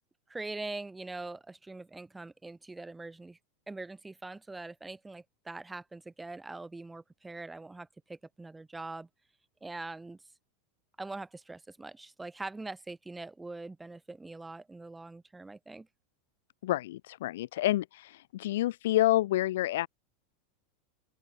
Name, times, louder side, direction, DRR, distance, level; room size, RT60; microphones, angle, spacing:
voice 1, 0.3-3.4 3.7-9.1 9.6-10.2 11.0-15.9, right 2 dB, 10° right, 3.2 m, -43 dB
voice 2, 16.6-19.9, left 15 dB, 75° left, 1.1 m, -28 dB
open air
hypercardioid pair, 115°, 0 cm